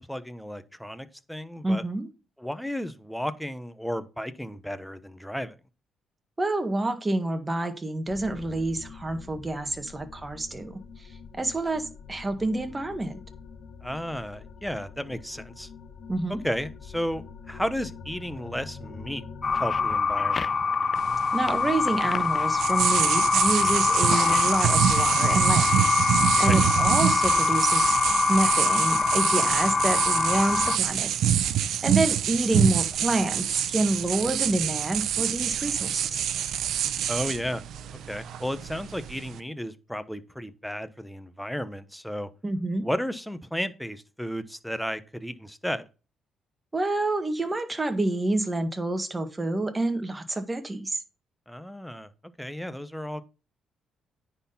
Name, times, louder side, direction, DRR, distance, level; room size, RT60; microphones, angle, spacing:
voice 1, 0.0-1.8 2.4-5.6 13.8-15.7 16.3-19.2 19.5-20.5 26.4-26.6 30.8-30.9 37.1-37.6 38.1-42.3 42.8-45.8 51.5-52.1 52.4-53.2, equal, ahead, 1.0 m, -33 dB
voice 2, 1.6-2.1 6.4-11.1 11.4-13.2 16.1-16.4 21.3-25.8 26.4-31.1 31.8-36.3 42.4-42.9 46.7-51.0, right 2 dB, 20° right, 1.7 m, -28 dB
sound 1, 8.1-20.0, left 5 dB, 60° left, 1.5 m, -45 dB
sound 2, 19.4-30.8, left 4 dB, 35° left, 0.4 m, -24 dB
sound 3, 21.0-39.4, right 10 dB, 75° right, 0.8 m, -26 dB
9.7 x 4.3 x 5.6 m
cardioid pair, 90°, 0 cm